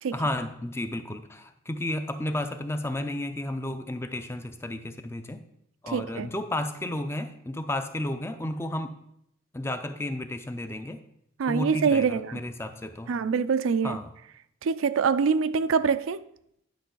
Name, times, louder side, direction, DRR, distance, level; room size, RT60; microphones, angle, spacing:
voice 1, 0.1-5.4 5.8-9.0 9.5-11.0 11.5-13.1 13.8-14.1, left 1 dB, 15° left, 0.4 m, -32 dB
voice 2, 5.9-6.3 11.4-12.4 13.1-14.0 14.6-16.3, right 5 dB, 85° right, 0.4 m, -25 dB
10.5 x 5.9 x 3.8 m
head